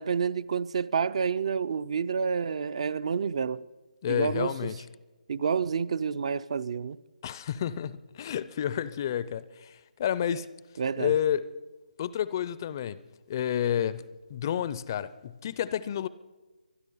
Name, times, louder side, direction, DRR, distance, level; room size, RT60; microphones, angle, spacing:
voice 1, 0.0-3.6 4.1-4.7 5.3-7.0 10.8-11.2, right 6 dB, 45° right, 0.4 m, -29 dB
voice 2, 4.0-4.8 7.2-10.5 11.0-11.5 12.0-13.0 13.3-16.1, left 9 dB, 25° left, 0.4 m, -30 dB
24.0 x 10.5 x 5.5 m
hypercardioid pair, 160°, 5 cm